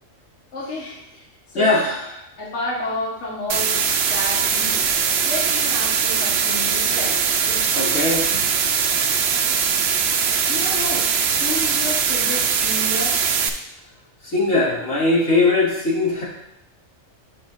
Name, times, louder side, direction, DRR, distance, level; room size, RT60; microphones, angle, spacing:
voice 1, 0.5-1.3 1.5-1.9 2.4-4.8 5.2-7.7 9.3-9.6 10.3-13.2, left 2 dB, 55° left, -5 dB, 1.6 m, -31 dB
voice 2, 1.5-2.0 7.8-8.3 14.2-16.2, left 2 dB, 80° left, -5 dB, 2.3 m, -19 dB
sound 1, 3.5-13.5, right 6 dB, 60° right, 0.8 m, -21 dB
9.1 x 6.2 x 2.5 m, 0.82 s
omnidirectional pair, 1.4 m